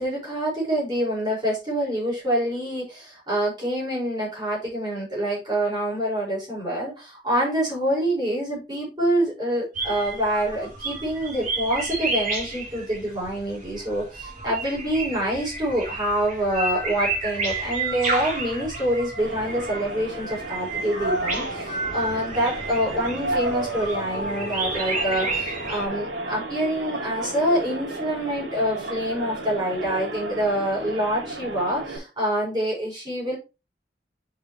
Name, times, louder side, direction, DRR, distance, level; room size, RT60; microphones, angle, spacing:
voice 1, 0.0-33.4, right 1 dB, 25° right, -6 dB, 5.2 m, -26 dB
sound 1, 9.7-25.9, right 3 dB, 50° right, 3.0 m, -31 dB
sound 2, 19.2-32.0, right 1 dB, 85° right, 3.3 m, -32 dB
8.8 x 6.0 x 3.1 m, 0.28 s
head